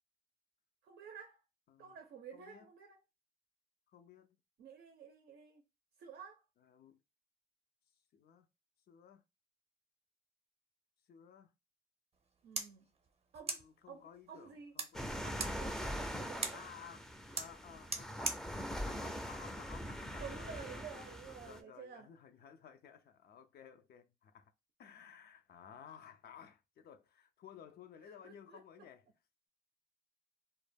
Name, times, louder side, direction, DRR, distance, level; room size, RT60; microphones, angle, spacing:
voice 1, 0.8-1.4 1.8-3.0 4.6-5.6 6.0-6.4 12.4-12.9 13.3-13.6 13.9-14.7 15.2-16.6 20.2-22.1 28.0-28.6, right 7 dB, 90° right, 0.5 m, -51 dB
voice 2, 2.3-2.7 3.9-4.4 6.6-7.0 8.1-8.5 8.9-9.2 11.1-11.5 13.4-15.3 16.5-17.1 17.3-18.5 18.9-24.5 24.8-29.1, left 8 dB, 75° left, 0.4 m, -56 dB
sound 1, 12.1-20.2, right 4 dB, 40° right, 0.6 m, -45 dB
sound 2, 14.9-21.6, equal, 5° left, 0.4 m, -42 dB
2.1 x 2.0 x 3.2 m
cardioid pair, 85°, 16 cm